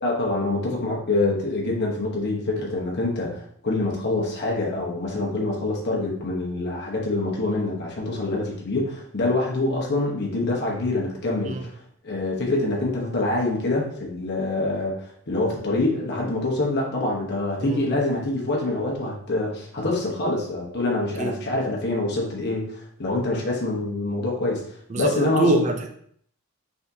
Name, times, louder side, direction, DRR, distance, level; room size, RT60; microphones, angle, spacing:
voice 1, 0.0-11.6 12.0-15.0 15.3-24.6 24.9-25.6, left 2 dB, 50° left, -2 dB, 1.0 m, -25 dB
voice 2, 24.9-25.9, right 3 dB, 35° right, 4 dB, 0.4 m, -25 dB
4.2 x 3.6 x 2.7 m, 0.64 s
head